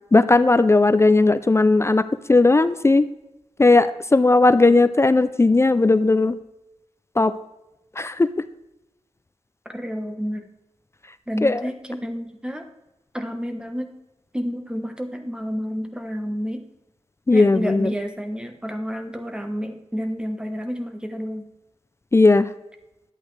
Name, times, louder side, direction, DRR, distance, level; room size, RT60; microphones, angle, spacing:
voice 1, 0.1-3.1 3.6-6.3 7.2-7.3 8.0-8.3 11.4-11.6 17.3-17.9 22.1-22.5, left 3 dB, 25° left, 13 dB, 0.4 m, -16 dB
voice 2, 9.7-10.4 11.3-12.7 13.1-13.9 14.3-16.6 17.3-21.5, equal, 10° right, 5 dB, 1.0 m, -30 dB
11.5 x 8.1 x 3.3 m, 0.94 s
wide cardioid pair, 95°, 11 cm